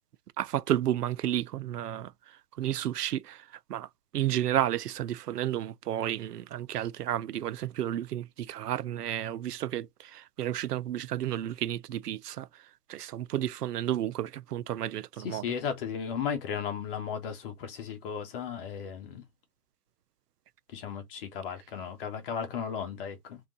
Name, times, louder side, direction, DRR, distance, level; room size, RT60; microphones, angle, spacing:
voice 1, 0.4-2.1 2.6-3.9 4.1-12.5 12.9-15.4, right 12 dB, 75° right, 0.6 m, -32 dB
voice 2, 15.2-19.2 20.7-23.4, left 7 dB, 35° left, 1.2 m, -35 dB
3.4 x 3.0 x 3.8 m
hypercardioid pair, 145°, 47 cm